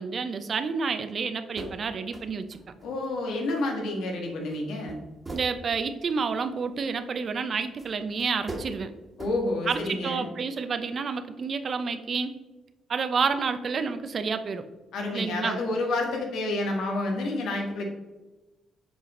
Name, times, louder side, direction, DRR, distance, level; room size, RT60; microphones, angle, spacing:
voice 1, 0.0-2.6 5.3-8.9 9.7-12.3 12.9-14.7 15.1-15.6, right 5 dB, 50° right, 9 dB, 0.7 m, -29 dB
sound 1, 1.6-1.8 2.1-3.4 3.6-3.7 4.5-4.6 4.9-6.5 7.8-7.9 8.2-8.7 9.1-9.4 9.7-9.8, right 2 dB, 20° right, 1.6 m, -40 dB
voice 2, 2.8-5.0 9.2-10.3 14.9-17.9, left 2 dB, 80° left, 1 dB, 1.8 m, -29 dB
7.9 x 5.1 x 3.8 m, 1.1 s
cardioid pair, 90°, 0 cm